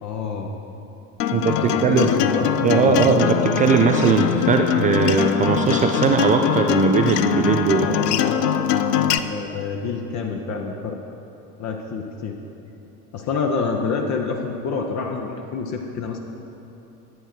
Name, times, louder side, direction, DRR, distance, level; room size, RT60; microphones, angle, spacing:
voice 1, 0.0-0.5 1.5-3.1 7.7-11.0 11.6-12.4 13.1-16.2, left 5 dB, 35° left, 2 dB, 0.8 m, -27 dB
Acoustic guitar, 1.2-9.2, left 10 dB, 75° left, 0.5 m, -22 dB
voice 2, 1.3-2.1 2.6-7.9, right 5 dB, 20° right, 3 dB, 0.3 m, -19 dB
11.0 x 8.9 x 4.4 m, 2.9 s
figure-of-eight pair, 65°, 48 cm